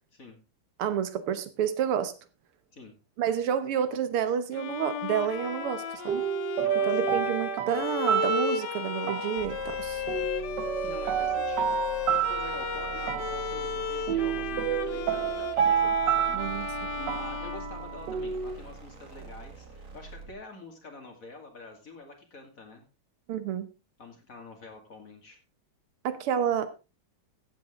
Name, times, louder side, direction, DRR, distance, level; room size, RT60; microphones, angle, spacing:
voice 1, 0.8-2.1 3.2-6.2 6.8-10.0 16.3-16.7 23.3-23.7 26.0-26.7, right 9 dB, 85° right, 12 dB, 2.0 m, -29 dB
Bowed string instrument, 4.5-18.4, left 9 dB, 65° left, 1.1 m, -35 dB
sound 1, 5.4-18.6, right 10 dB, 60° right, 1.4 m, -30 dB
voice 2, 6.6-7.2 10.8-16.5 17.0-22.9 24.0-25.4, left 2 dB, 40° left, 4 dB, 2.7 m, -47 dB
sound 2, 9.4-20.4, right 4 dB, 40° right, 2.1 m, -44 dB
14.5 x 8.2 x 3.7 m, 0.29 s
omnidirectional pair, 2.4 m